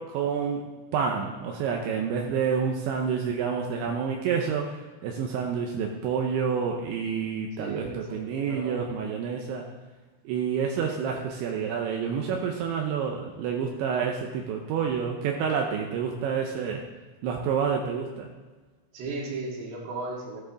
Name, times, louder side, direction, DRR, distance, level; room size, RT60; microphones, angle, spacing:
voice 1, 0.0-4.8 5.0-9.7 10.3-16.8 17.2-18.3, right 6 dB, 80° right, 1 dB, 3.1 m, -28 dB
voice 2, 7.6-8.8 18.9-20.4, right 3 dB, 60° right, -1 dB, 3.6 m, -35 dB
15.0 x 9.9 x 3.9 m, 1.3 s
omnidirectional pair, 5.6 m